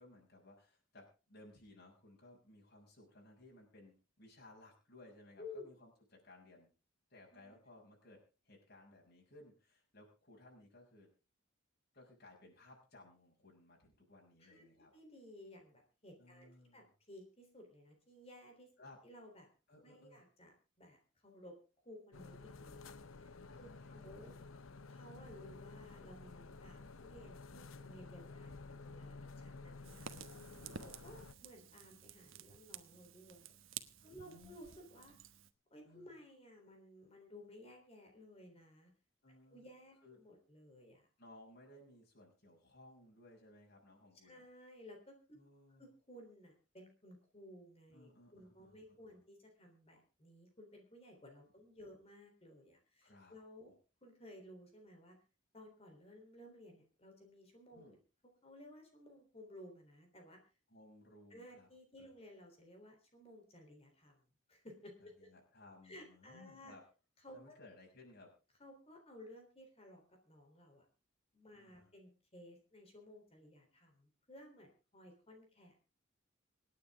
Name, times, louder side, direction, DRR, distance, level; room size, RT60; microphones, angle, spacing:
voice 1, 0.0-6.7 7.1-11.1 11.9-14.9 16.2-16.9 18.8-19.0 19.7-20.2 23.4-24.3 29.3-29.9 34.0-34.6 35.8-36.2 39.2-39.7 40.0-40.2 41.2-44.4 45.3-45.9 47.9-49.2 53.0-53.4 53.7-53.8 57.7-58.0 60.7-61.7 62.0-62.2 65.0-66.8 67.3-68.3 71.5-71.9, left 2 dB, 50° left, -2 dB, 6.6 m, -60 dB
voice 2, 14.9-18.7 19.0-19.5 19.8-21.5 21.9-23.3 23.6-24.3 24.9-30.1 30.8-33.5 34.0-35.1 35.7-38.9 39.5-41.1 44.2-45.2 45.8-53.7 54.0-55.2 55.5-58.0 58.4-60.4 61.3-64.2 64.5-65.3 65.8-66.7 67.2-67.6 68.6-70.9 71.3-75.8, left 1 dB, 30° left, 3 dB, 3.7 m, -57 dB
sound 1, 22.1-31.3, left 3 dB, 90° left, 0.9 m, -52 dB
Fire, 29.8-35.5, right 8 dB, 80° right, 1.1 m, -52 dB
27.5 x 9.5 x 3.7 m, 0.33 s
head